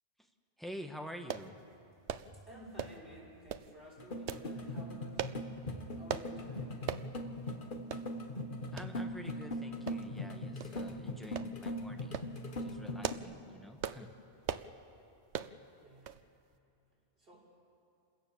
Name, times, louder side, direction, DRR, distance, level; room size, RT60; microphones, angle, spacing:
voice 1, 0.6-1.6 8.7-12.2 12.6-14.1, equal, ahead, 4 dB, 1.4 m, -48 dB
sound 1, 1.3-1.5 2.1-2.3 2.8-3.0 3.5-3.7 4.3-4.5 5.2-5.4 6.1-6.3 6.9-7.1 7.5-7.6 7.9-8.1 8.8-8.9 9.9-10.2 10.6-10.7 11.4-11.5 12.0-12.3 12.8-13.3 13.8-14.0 14.4-14.7 15.3-15.5 16.1-16.2 16.5-16.6, right 9 dB, 80° right, 1.0 m, -38 dB
voice 2, 2.1-6.8 15.8-16.2 17.2-17.6, equal, 55° right, -5 dB, 6.3 m, -53 dB
sound 2, 4.0-13.1, left 1 dB, 50° left, 1.5 m, -40 dB
28.5 x 16.5 x 7.1 m, 2.5 s
omnidirectional pair, 1.1 m